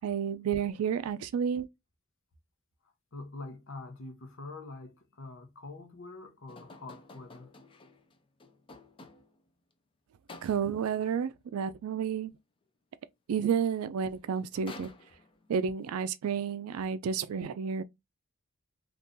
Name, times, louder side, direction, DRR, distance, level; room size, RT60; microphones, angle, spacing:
voice 1, 0.0-1.7 10.4-12.3 13.3-14.9 15.5-17.8, right 7 dB, 85° right, 0.3 m, -31 dB
voice 2, 3.1-7.5, left 3 dB, 65° left, 0.8 m, -45 dB
sound 1, 6.5-9.5 10.3-10.9 13.6-13.7 14.0-15.5, left 2 dB, 25° left, 0.4 m, -52 dB
3.6 x 2.4 x 2.6 m
head